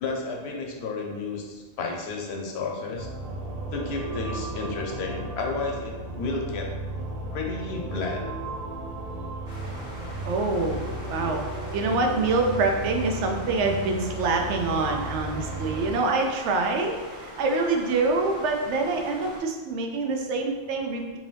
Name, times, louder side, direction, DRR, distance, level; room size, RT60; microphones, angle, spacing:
voice 1, 0.0-3.1 3.7-6.7 7.3-8.2, left 3 dB, 70° left, 1 dB, 0.9 m, -32 dB
sound 1, 3.0-15.9, right 2 dB, 55° right, 0.4 m, -35 dB
sound 2, 9.4-19.4, equal, 40° right, 1.3 m, -42 dB
voice 2, 10.3-11.4 11.7-21.2, right 3 dB, 85° right, 3 dB, 0.9 m, -26 dB
3.6 x 2.6 x 3.3 m, 1.3 s
omnidirectional pair, 1.2 m